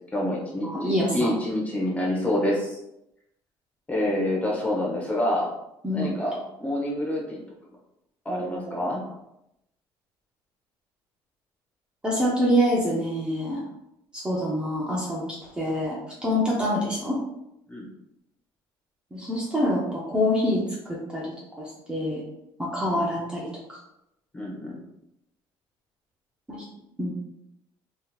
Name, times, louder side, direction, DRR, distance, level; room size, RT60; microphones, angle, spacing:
voice 1, 0.1-2.8 3.9-5.5 5.9-7.4 8.2-9.0 17.7-17.9 22.9-23.0 24.3-24.8, left 1 dB, 15° left, -2 dB, 1.0 m, -27 dB
voice 2, 0.6-1.3 5.8-6.1 8.3-8.8 12.0-13.6 14.1-15.9 16.2-17.2 19.1-21.3 21.9-22.2 22.6-23.8 26.5-26.6 27.0-27.1, equal, 10° right, -5 dB, 0.7 m, -26 dB
3.8 x 2.8 x 2.4 m, 0.84 s
cardioid pair, 125°, 9 cm